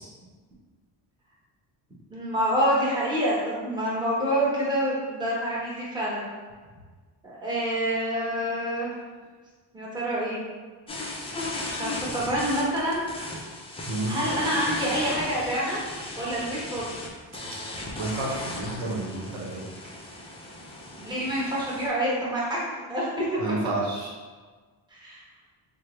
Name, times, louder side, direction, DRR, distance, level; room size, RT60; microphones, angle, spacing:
voice 1, 2.1-6.3 7.2-8.9 9.7-10.4 11.7-13.1 14.1-15.8 16.2-17.0 20.9-22.6 22.9-23.4 24.9-25.2, equal, 10° right, -7 dB, 1.0 m, -27 dB
sound 1, 10.9-21.9, left 1 dB, 15° left, 0.4 m, -36 dB
voice 2, 18.0-19.6 23.4-24.1, right 2 dB, 90° right, -3 dB, 0.8 m, -30 dB
3.1 x 2.1 x 3.0 m, 1.4 s
cardioid pair, 95°, 45 cm